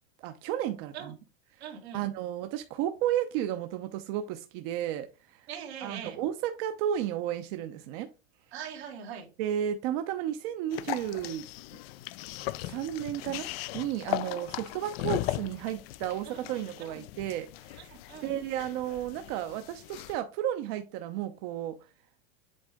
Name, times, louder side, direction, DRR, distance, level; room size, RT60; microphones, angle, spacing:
voice 1, 0.2-1.1 1.9-5.5 5.8-8.1 9.4-11.4 12.6-13.5 13.7-17.9 18.2-21.8, right 11 dB, 55° right, 0.7 m, -33 dB
voice 2, 1.6-2.0 5.5-6.2 8.5-9.3 14.2-14.4 16.2-16.5 16.8-17.0 17.9-18.3, right 8 dB, 90° right, 2.1 m, -42 dB
sound 1, 10.7-20.2, left 17 dB, 70° left, 0.4 m, -38 dB
7.9 x 3.7 x 3.6 m
supercardioid pair, 140°, 31 cm